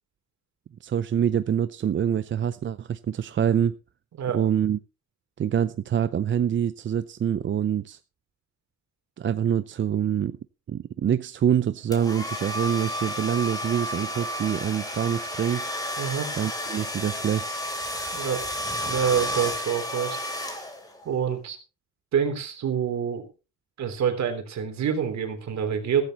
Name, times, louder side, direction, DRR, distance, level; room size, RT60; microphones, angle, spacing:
voice 1, 0.8-3.8 4.3-4.8 5.4-8.0 9.2-10.4 10.7-15.6 16.3-17.6, right 9 dB, 40° right, 14 dB, 0.6 m, -25 dB
sound 1, 11.9-21.0, equal, 10° left, 3.4 m, -32 dB
voice 2, 16.0-16.3 18.1-18.4 18.9-20.3 21.0-21.6 22.1-23.3 23.8-26.0, right 8 dB, 65° right, 6 dB, 3.3 m, -26 dB
14.5 x 14.5 x 3.0 m, 0.32 s
cardioid pair, 90°, 30 cm